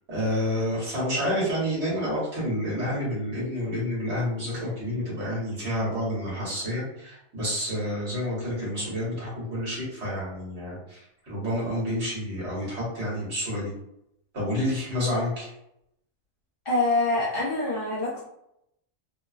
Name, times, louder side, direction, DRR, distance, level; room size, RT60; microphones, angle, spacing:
voice 1, 0.1-13.7 14.3-15.5, equal, 55° right, -7 dB, 1.4 m, -29 dB
voice 2, 16.6-18.2, left 2 dB, 45° left, -8 dB, 1.1 m, -25 dB
2.8 x 2.2 x 2.3 m, 0.78 s
omnidirectional pair, 1.4 m